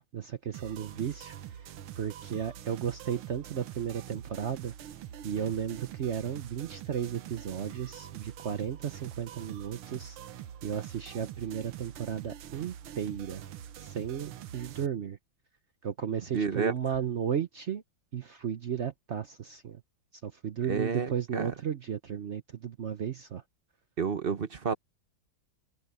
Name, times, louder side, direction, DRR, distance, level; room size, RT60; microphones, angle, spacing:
voice 1, 0.0-1.3 2.0-4.7 5.2-10.2 10.6-13.4 13.8-15.2 15.8-17.8 18.1-19.8 20.2-23.4, right 8 dB, 70° right, 0.6 m, -34 dB
sound 1, 0.5-14.9, right 10 dB, 90° right, 1.9 m, -45 dB
voice 2, 16.3-16.7 20.7-21.5 24.0-24.7, right 5 dB, 40° right, 0.9 m, -30 dB
open air
omnidirectional pair, 2.3 m